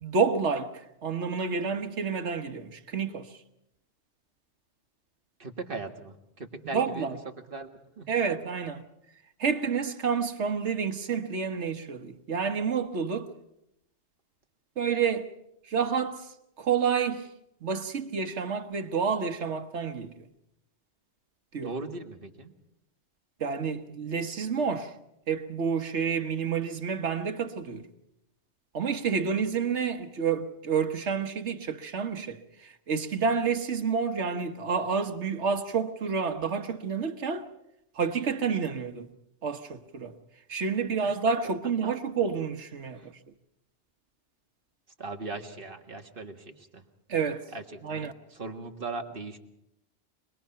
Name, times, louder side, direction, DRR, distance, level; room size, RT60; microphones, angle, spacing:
voice 1, 0.0-3.4 6.7-7.2 8.1-8.8 9.4-13.3 14.8-15.3 15.6-17.3 17.6-20.3 21.5-21.7 23.4-24.9 25.3-27.9 28.7-37.5 37.9-39.1 39.4-40.2 40.5-43.1 47.1-47.4 47.8-48.1, right 6 dB, 90° right, 1.6 m, -29 dB
voice 2, 5.4-7.2 7.5-7.7 8.0-8.1 21.6-22.5 41.1-41.2 42.9-43.1 45.0-46.9 47.5-49.4, right 3 dB, 50° right, 1.9 m, -39 dB
25.5 x 20.0 x 5.8 m
omnidirectional pair, 1.1 m